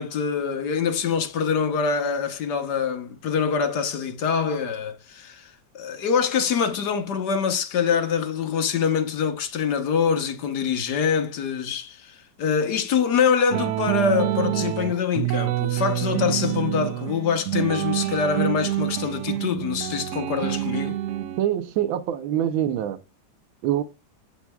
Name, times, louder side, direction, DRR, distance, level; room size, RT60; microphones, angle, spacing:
voice 1, 0.0-21.0, left 6 dB, 60° left, 1.4 m, -25 dB
sound 1, 13.5-21.4, right 14 dB, 75° right, 0.9 m, -27 dB
voice 2, 21.4-23.0 23.6-23.8, right 11 dB, 90° right, 1.5 m, -24 dB
8.1 x 5.7 x 2.3 m
omnidirectional pair, 2.1 m